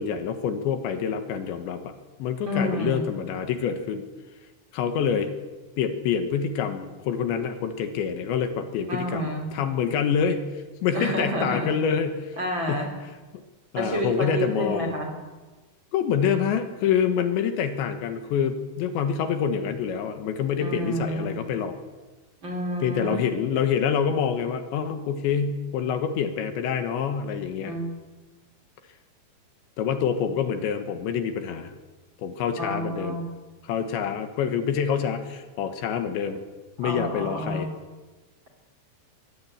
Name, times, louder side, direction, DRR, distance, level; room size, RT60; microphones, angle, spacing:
voice 1, 0.0-1.9 2.2-4.0 4.7-5.3 5.8-10.5 10.8-12.4 12.7-12.8 13.7-15.0 15.9-21.8 22.8-27.7 29.8-31.7 32.2-33.2 33.6-36.4 36.8-37.7, left 7 dB, 75° left, 8 dB, 3.5 m, -26 dB
voice 2, 2.5-3.1 8.9-9.5 10.9-11.8 12.4-12.9 13.7-15.1 20.6-21.3 22.4-23.2 27.6-27.9 32.6-33.3 36.8-37.7, equal, 30° right, 2 dB, 3.1 m, -29 dB
24.0 x 16.5 x 8.7 m, 1.3 s
omnidirectional pair, 5.5 m